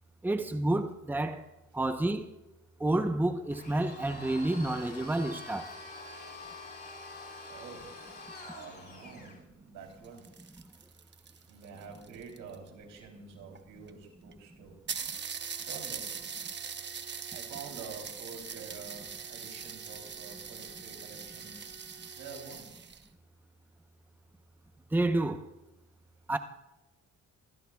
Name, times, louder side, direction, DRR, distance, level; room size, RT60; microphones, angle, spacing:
voice 1, 0.2-1.4 1.7-2.3 2.8-5.7 24.9-25.4 26.3-26.4, right 2 dB, 5° right, 0.9 m, -29 dB
Domestic sounds home sounds, 3.5-9.4, left 3 dB, 35° left, 3.5 m, -46 dB
voice 2, 7.5-8.0 8.4-10.5 11.4-14.8 15.6-16.1 17.3-21.6 22.1-22.9, right 5 dB, 90° right, 3.5 m, -48 dB
sound 1, 9.9-12.7 13.6-13.7 13.9-14.0 14.3-14.4 14.9-23.1, right 6 dB, 35° right, 0.9 m, -41 dB
26.5 x 15.0 x 2.4 m
cardioid pair, 90°, 30 cm